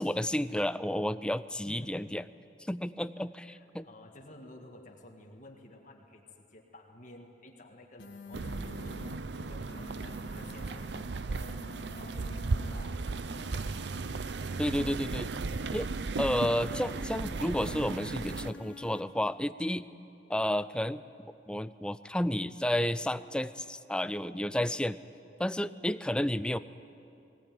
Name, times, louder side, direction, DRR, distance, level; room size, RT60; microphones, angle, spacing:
voice 1, 0.0-2.2 2.6-3.9 14.6-15.3 15.7-15.9 16.2-19.9 20.3-25.0 25.4-26.6, left 1 dB, 5° left, 14 dB, 0.4 m, -31 dB
voice 2, 1.6-2.0 3.4-13.8, left 1 dB, 45° left, 1 dB, 1.7 m, -53 dB
sound 1, 8.0-9.2 9.7-11.0 11.5-12.8 13.3-14.5 15.0-16.1 16.6-17.7 18.2-19.0, left 1 dB, 90° left, 1.9 m, -49 dB
sound 2, 8.3-18.5, right 3 dB, 70° right, 0.6 m, -36 dB
21.0 x 18.0 x 9.2 m, 2.8 s
head